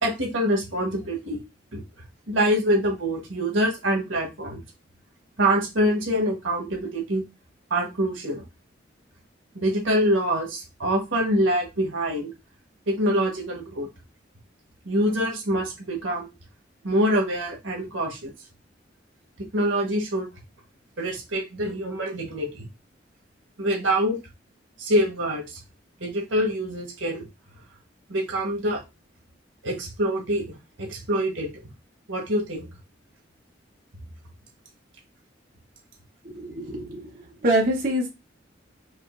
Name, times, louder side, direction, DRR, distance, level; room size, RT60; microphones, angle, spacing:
voice 1, 0.0-1.4 1.7-1.8 2.3-4.6 5.4-7.2 7.7-8.4 9.5-12.3 12.9-13.9 14.8-16.3 16.8-18.3 19.5-20.3 21.0-22.6 23.6-24.2 24.8-25.6 26.0-27.2 28.1-28.8 29.6-30.4 30.8-31.5 32.1-32.7, equal, 90° right, 1 dB, 1.3 m, -25 dB
voice 2, 36.2-37.1 37.4-38.1, right 1 dB, 45° right, -2 dB, 1.0 m, -24 dB
5.0 x 2.6 x 2.5 m, 0.24 s
head